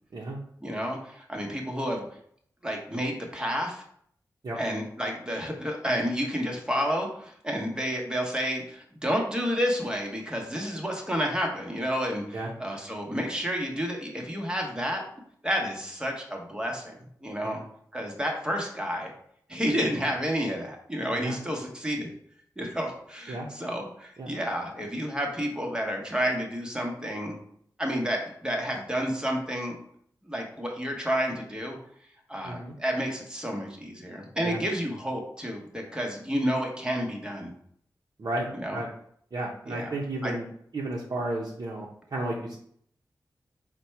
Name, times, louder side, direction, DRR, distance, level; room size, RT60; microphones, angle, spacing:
voice 1, 0.6-2.1 2.6-3.8 4.6-15.0 15.4-17.6 17.9-19.1 19.5-22.1 22.6-27.4 27.8-29.7 30.2-31.8 32.3-37.5 38.5-38.8 39.7-39.9 40.2-40.3, equal, 10° right, 1 dB, 1.0 m, -30 dB
voice 2, 32.4-32.8 34.4-34.6 38.2-38.9 39.3-40.4 40.7-42.6, right 2 dB, 60° right, -3 dB, 0.7 m, -33 dB
4.2 x 2.2 x 4.5 m, 0.65 s
wide cardioid pair, 75°, 7 cm